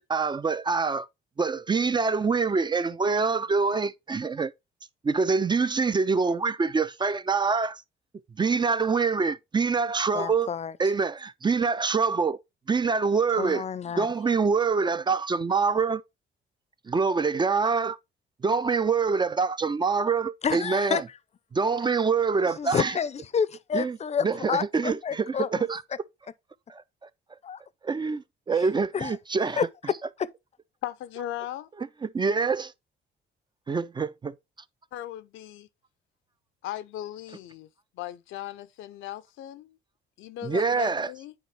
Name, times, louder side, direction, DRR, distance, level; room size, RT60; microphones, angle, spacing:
voice 1, 0.1-1.1 1.4-4.5 5.0-7.8 8.4-10.5 10.8-12.4 12.7-13.6 14.0-16.0 16.9-18.0 18.4-21.0 21.5-22.9 23.7-24.0 24.2-25.8 26.7-26.8 27.8-29.6 32.0-32.7 33.7-34.3 40.4-41.1, right 4 dB, 25° right, 0.3 m, -25 dB
voice 2, 10.1-10.7 13.4-14.1 20.4-21.0 22.6-25.7 27.4-27.6 28.9-29.2 29.6-30.3, left 7 dB, 35° left, 0.5 m, -29 dB
voice 3, 30.8-31.7 34.9-35.7 36.6-37.7 37.9-39.8 40.2-41.3, left 13 dB, 85° left, 0.6 m, -37 dB
9.4 x 4.1 x 3.1 m
cardioid pair, 90°, 20 cm